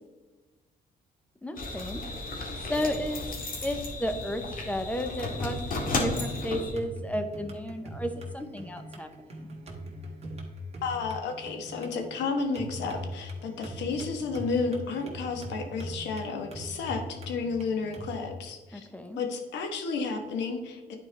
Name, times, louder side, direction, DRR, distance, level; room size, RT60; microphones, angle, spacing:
voice 1, 1.4-2.0 2.7-3.3 3.6-9.5 18.7-19.2, equal, 10° left, 7 dB, 0.8 m, -33 dB
sound 1, 1.6-6.7, left 2 dB, 50° left, 1.7 m, -33 dB
sound 2, 6.6-18.1, equal, 35° right, 1.7 m, -41 dB
voice 2, 10.8-18.9 19.2-21.0, left 4 dB, 85° left, 4 dB, 1.2 m, -32 dB
10.0 x 4.6 x 3.3 m, 1.2 s
cardioid pair, 105°, 18 cm